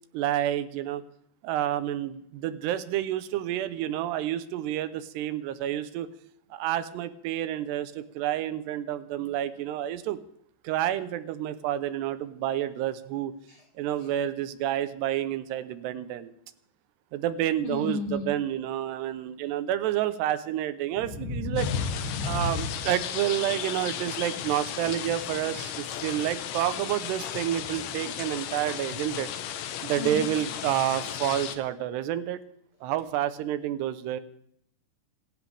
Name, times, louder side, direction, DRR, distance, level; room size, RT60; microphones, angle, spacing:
voice 1, 0.1-1.0 1.4-6.1 6.5-10.2 10.6-13.3 13.8-16.3 17.1-21.7 22.2-29.3 29.8-32.4 32.8-34.2, right 12 dB, 75° right, 13 dB, 2.8 m, -29 dB
voice 2, 17.6-18.3 21.2-22.7 30.0-30.3, left 3 dB, 55° left, 3 dB, 3.6 m, -31 dB
sound 1, 21.6-31.6, left 10 dB, 80° left, 3.4 m, -35 dB
28.0 x 13.5 x 3.5 m, 0.71 s
omnidirectional pair, 5.2 m